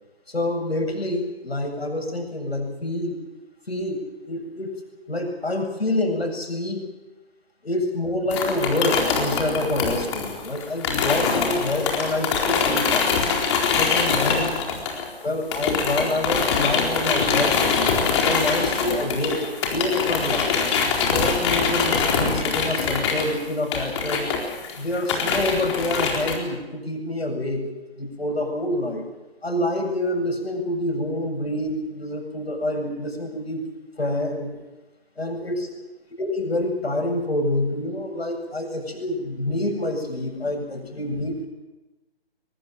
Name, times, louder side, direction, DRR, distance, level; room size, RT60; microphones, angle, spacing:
voice 1, 0.3-3.2 3.7-4.7 5.1-6.8 7.6-13.2 13.8-14.6 15.2-17.6 18.2-19.4 19.7-20.6 21.1-24.3 24.8-27.6 28.0-29.0 29.4-33.6 34.0-34.5 35.2-35.7 36.2-41.5, left 1 dB, 75° left, 4 dB, 7.9 m, -27 dB
sound 1, 8.3-15.2 15.5-26.4, left 5 dB, 30° left, 4.2 m, -23 dB
23.0 x 22.0 x 7.7 m, 1.1 s
figure-of-eight pair, 140°, 31 cm